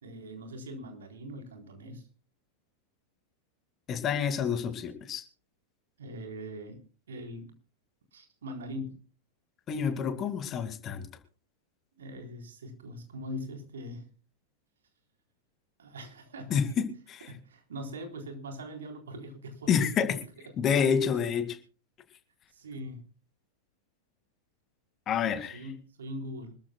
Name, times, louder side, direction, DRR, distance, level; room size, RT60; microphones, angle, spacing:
voice 1, 0.0-2.0 6.0-6.8 7.1-7.4 8.1-8.9 12.0-14.0 15.8-16.7 17.3-20.1 20.4-20.6 22.5-23.0 25.5-26.5, equal, 65° right, 4 dB, 4.0 m, -41 dB
voice 2, 3.9-5.2 9.7-11.1 16.5-17.2 19.7-20.2 20.6-21.6 25.1-25.6, left 7 dB, 30° left, 9 dB, 2.1 m, -28 dB
26.0 x 13.5 x 2.3 m, 0.36 s
figure-of-eight pair, 90°, 0 cm